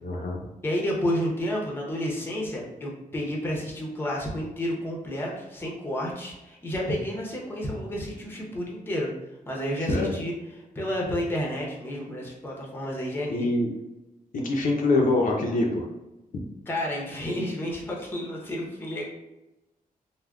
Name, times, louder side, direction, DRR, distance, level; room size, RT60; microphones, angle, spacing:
voice 1, 0.0-0.4 9.9-10.1 13.3-13.7 14.3-15.9, left 2 dB, 65° left, 0 dB, 0.5 m, -24 dB
voice 2, 0.6-9.1 9.5-10.3 10.7-13.5 16.7-19.0, equal, 15° left, -2 dB, 0.6 m, -30 dB
3.4 x 2.1 x 2.3 m, 0.99 s
wide cardioid pair, 145°, 15 cm